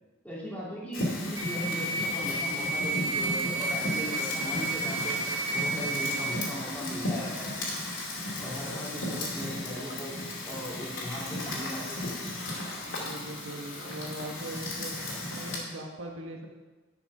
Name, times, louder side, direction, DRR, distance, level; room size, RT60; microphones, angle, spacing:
voice 1, 0.2-5.2 5.5-7.5 8.4-10.2 10.4-12.1, equal, 5° left, -6 dB, 2.4 m, -38 dB
Fire, 0.9-15.6, left 1 dB, 75° left, 2.6 m, -35 dB
sound 1, 1.4-6.4, right 2 dB, 65° right, 1.2 m, -31 dB
voice 2, 12.9-16.5, right 1 dB, 90° right, 1 dB, 1.3 m, -41 dB
10.5 x 5.9 x 5.5 m, 1.2 s
head